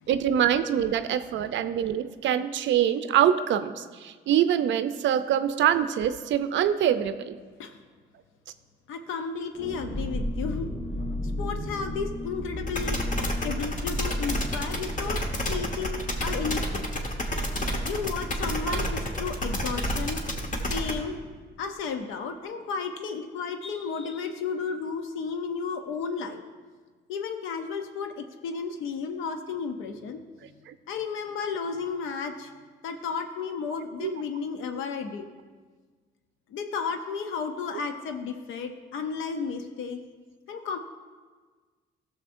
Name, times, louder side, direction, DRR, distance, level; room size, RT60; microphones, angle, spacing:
voice 1, 0.1-7.4 18.7-18.8 30.7-30.8 34.0-34.1, right 10 dB, 70° right, 11 dB, 0.4 m, -24 dB
voice 2, 8.9-10.7 11.4-13.0 13.4-16.9 17.8-20.2 20.7-21.2 21.6-26.4 27.1-30.2 30.9-32.5 32.8-35.3 36.5-40.0 40.5-40.8, left 5 dB, 85° left, 6 dB, 0.6 m, -33 dB
sound 1, 9.5-19.0 19.2-19.3 19.6-19.9, left 1 dB, 25° left, 2.7 m, -35 dB
sound 2, 12.7-20.9, left 1 dB, 40° left, 1.2 m, -29 dB
14.5 x 6.6 x 2.6 m, 1.5 s
cardioid pair, 90°, 20 cm